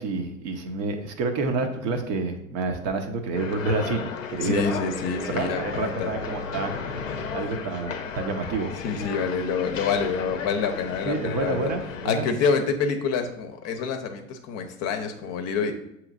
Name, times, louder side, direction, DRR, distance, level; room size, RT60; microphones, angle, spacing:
voice 1, 0.0-4.8 5.3-6.7 7.3-8.7 11.0-12.3, right 3 dB, 40° right, 6 dB, 0.7 m, -28 dB
sound 1, 3.3-12.1, left 5 dB, 90° left, 0.6 m, -34 dB
voice 2, 4.4-6.1 8.8-11.7 12.0-15.7, left 5 dB, 40° left, 6 dB, 0.7 m, -27 dB
6.8 x 3.0 x 2.5 m, 0.83 s
hypercardioid pair, 85°, 39 cm